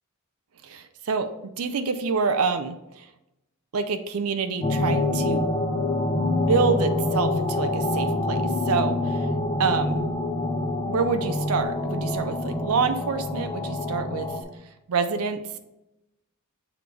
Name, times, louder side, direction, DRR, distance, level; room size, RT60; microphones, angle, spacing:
voice 1, 0.6-3.1 3.7-5.5 6.5-9.3 9.6-10.0 10.9-14.3 14.9-15.6, right 5 dB, 80° right, 9 dB, 0.5 m, -27 dB
sound 1, 4.6-14.4, left 2 dB, 20° left, 0.6 m, -26 dB
7.2 x 3.3 x 4.6 m, 0.92 s
head